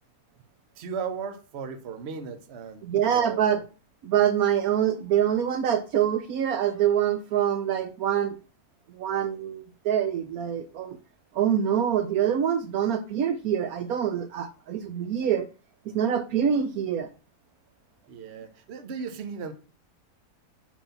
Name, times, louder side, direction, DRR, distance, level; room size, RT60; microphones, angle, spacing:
voice 1, 0.8-2.8 3.1-3.6 18.1-19.5, right 6 dB, 50° right, 1.0 m, -36 dB
voice 2, 2.8-3.6 4.0-8.3 8.9-11.0 11.3-15.5 15.9-17.1, right 9 dB, 75° right, 1.0 m, -25 dB
7.2 x 2.8 x 5.6 m
omnidirectional pair, 1.7 m